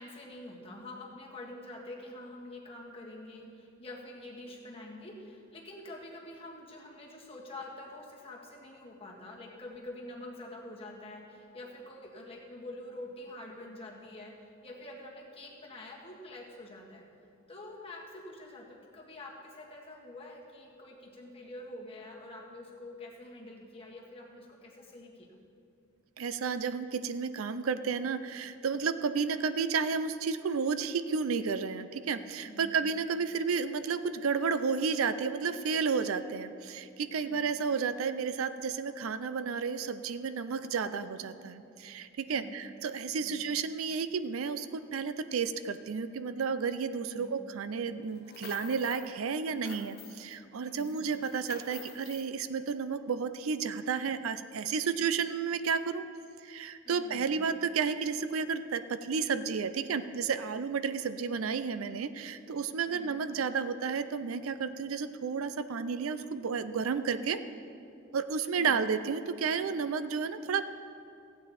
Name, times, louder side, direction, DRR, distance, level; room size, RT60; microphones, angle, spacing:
voice 1, 0.0-14.3 14.6-17.1 17.5-25.3 32.4-32.7 37.2-37.5 42.3-42.6 43.2-43.4 47.1-47.4 50.6-50.9 56.8-57.5 62.9-63.2 68.6-68.8, left 1 dB, 30° left, -2 dB, 1.7 m, -46 dB
voice 2, 26.2-56.0 56.4-67.4 68.1-70.7, right 5 dB, 75° right, 12 dB, 0.5 m, -32 dB
sound 1, 48.1-49.1 49.4-50.4 50.7-52.3, left 6 dB, 50° left, 0.9 m, -49 dB
15.5 x 8.7 x 4.2 m, 2.5 s
head